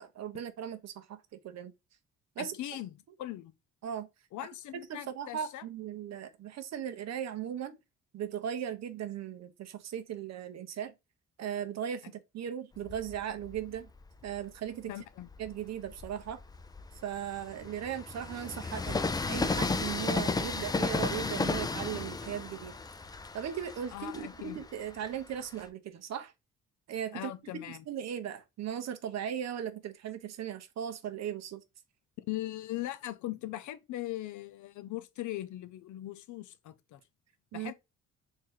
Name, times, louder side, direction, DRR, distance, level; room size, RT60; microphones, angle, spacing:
voice 1, 0.0-1.7 2.4-2.5 3.8-4.1 4.9-7.8 8.1-10.9 11.4-13.9 14.2-14.9 15.4-16.4 17.0-22.7 23.3-26.3 26.9-31.6 37.5-37.7, right 9 dB, 60° right, 0.7 m, -38 dB
voice 2, 2.4-3.5 4.3-5.6 14.9-15.3 23.9-24.6 27.1-27.9 32.2-37.0 37.5-37.7, left 15 dB, 75° left, 0.6 m, -40 dB
Train, 12.8-14.5 15.1-25.7, left 3 dB, 15° left, 0.3 m, -34 dB
3.1 x 2.7 x 3.7 m
cardioid pair, 90°, 30 cm